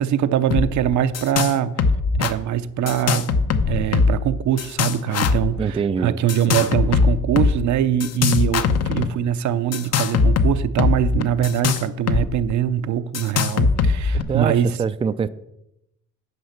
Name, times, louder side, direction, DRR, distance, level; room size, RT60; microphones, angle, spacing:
voice 1, 0.0-1.8 2.2-3.3 3.7-14.8, right 10 dB, 70° right, 12 dB, 0.7 m, -22 dB
sound 1, 0.5-1.5 1.8-2.3 2.9-4.3 4.6-5.5 6.3-7.5 8.0-9.1 9.7-12.2 12.5-12.6 13.1-14.2, left 5 dB, 55° left, 0.8 m, -20 dB
voice 2, 5.6-6.2 6.5-6.7 14.3-15.3, right 6 dB, 20° right, 13 dB, 0.4 m, -24 dB
9.5 x 5.8 x 5.8 m, 0.83 s
cardioid pair, 90°, 30 cm